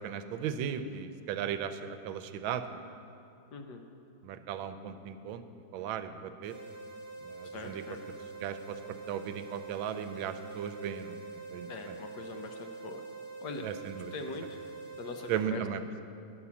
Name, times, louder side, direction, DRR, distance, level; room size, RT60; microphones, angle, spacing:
voice 1, 0.0-2.8 4.2-5.4 5.7-6.5 7.2-7.8 8.4-12.0 13.6-14.1 15.3-15.8, right 8 dB, 80° right, 10 dB, 1.3 m, -36 dB
voice 2, 3.5-3.8 7.5-8.0 11.7-13.0 13.4-13.7 14.1-14.5 15.0-15.6, left 4 dB, 70° left, 5 dB, 1.1 m, -42 dB
sound 1, 6.4-15.4, right 4 dB, 50° left, 2.7 m, -45 dB
9.7 x 7.3 x 7.0 m, 2.6 s
omnidirectional pair, 2.2 m